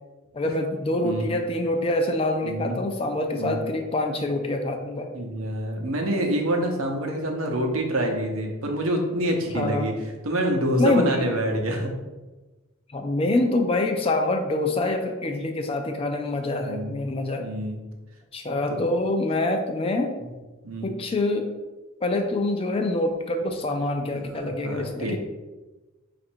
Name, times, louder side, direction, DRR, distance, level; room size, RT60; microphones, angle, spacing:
voice 1, 0.3-5.1 9.5-9.9 10.8-11.3 12.9-17.4 18.3-20.1 20.8-21.5 22.0-25.2, left 2 dB, 25° left, 4 dB, 0.4 m, -25 dB
voice 2, 2.4-2.8 3.4-3.6 5.1-9.9 10.2-11.9 16.6-16.9 17.4-17.8 18.7-18.8 20.2-20.3 20.6-20.9 24.1-25.2, right 1 dB, 80° right, 2 dB, 0.7 m, -27 dB
4.1 x 2.5 x 4.4 m, 1.2 s
head